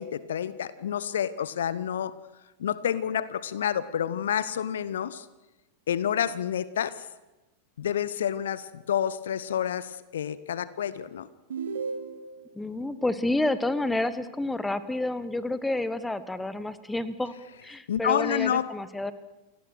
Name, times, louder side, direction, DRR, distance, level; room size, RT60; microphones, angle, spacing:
voice 1, 0.0-2.1 2.6-5.3 5.9-7.0 7.8-11.3 17.9-18.7, left 9 dB, 65° left, 17 dB, 0.8 m, -29 dB
sound 1, 11.5-12.5, right 5 dB, 65° right, 2.1 m, -34 dB
voice 2, 12.5-17.3 17.6-19.1, left 2 dB, 5° left, 14 dB, 1.2 m, -29 dB
28.5 x 17.5 x 6.3 m, 1.1 s
figure-of-eight pair, 90°, 0 cm